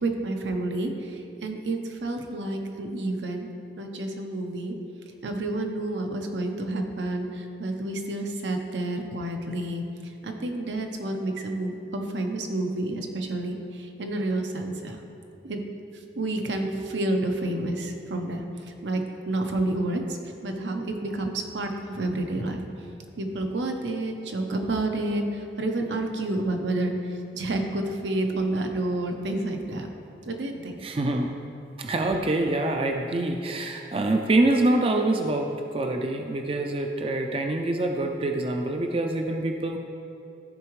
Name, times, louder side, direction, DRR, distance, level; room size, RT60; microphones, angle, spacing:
voice 1, 0.0-3.5 3.8-4.7 5.2-9.8 10.2-15.0 15.4-15.6 16.2-18.4 18.8-22.6 23.2-26.9 27.3-29.9 30.3-30.8, right 2 dB, 85° right, 3 dB, 0.8 m, -29 dB
voice 2, 30.8-31.3 31.8-39.8, right 2 dB, 30° right, 3 dB, 0.4 m, -25 dB
14.0 x 4.8 x 3.1 m, 2.7 s
head